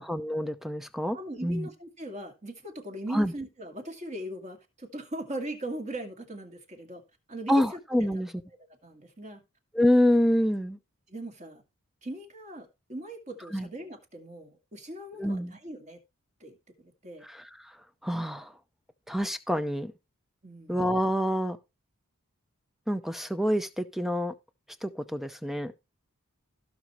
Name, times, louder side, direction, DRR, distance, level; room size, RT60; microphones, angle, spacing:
voice 1, 0.0-1.2 1.4-1.7 3.1-3.3 7.5-8.3 9.7-10.8 13.5-13.7 15.1-15.5 17.2-17.8 18.0-18.5 19.1-19.9 20.7-21.6 22.9-24.3 24.8-25.7, equal, ahead, 0.6 m, -27 dB
voice 2, 1.1-7.0 7.3-8.2 8.8-9.4 11.1-11.6 12.0-16.0 16.4-17.3 20.4-20.8, right 1 dB, 30° right, 2.2 m, -40 dB
16.5 x 6.1 x 3.1 m
head